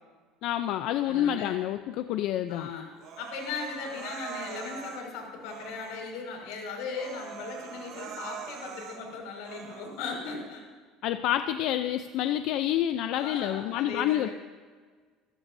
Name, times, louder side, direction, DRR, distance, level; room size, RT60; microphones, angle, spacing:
voice 1, 0.4-2.7 11.0-14.3, left 12 dB, 60° left, 9 dB, 0.6 m, -28 dB
voice 2, 1.0-1.6 2.5-2.9 3.2-10.6 13.1-14.3, left 4 dB, 85° left, 1 dB, 5.8 m, -38 dB
Human voice, 3.0-5.0 5.4-6.1 6.5-6.6 6.9-9.0 9.4-10.0, right 7 dB, 55° right, 2.9 m, -43 dB
27.0 x 14.0 x 2.7 m, 1.5 s
cardioid pair, 160°, 0 cm